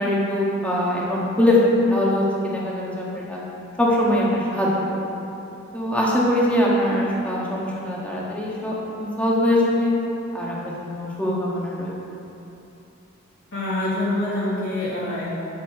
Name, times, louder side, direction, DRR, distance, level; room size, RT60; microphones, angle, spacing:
voice 1, 0.0-3.4 3.8-5.0 5.7-8.7 9.0-9.9 10.3-11.9, left 1 dB, 5° left, -5 dB, 1.6 m, -22 dB
voice 2, 13.5-15.3, left 1 dB, 60° left, -10 dB, 1.6 m, -25 dB
8.5 x 7.7 x 5.0 m, 2.9 s
head